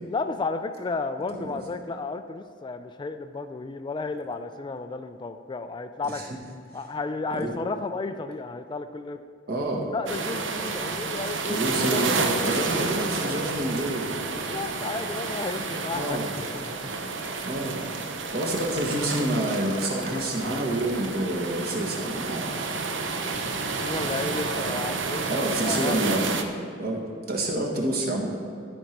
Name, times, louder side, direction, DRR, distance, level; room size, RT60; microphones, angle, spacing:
voice 1, 0.1-6.2 6.7-9.2 9.9-13.0 14.3-16.8 23.1-26.3, left 3 dB, 25° left, 9 dB, 0.3 m, -33 dB
voice 2, 9.5-9.9 11.5-14.1 15.9-16.3 17.4-17.9 18.3-22.5 25.2-26.3 26.8-27.0 27.3-28.3, right 1 dB, 55° right, -1 dB, 1.6 m, -28 dB
sound 1, 10.1-26.4, right 4 dB, 75° right, 0.8 m, -30 dB
13.0 x 5.2 x 4.5 m, 2.5 s
head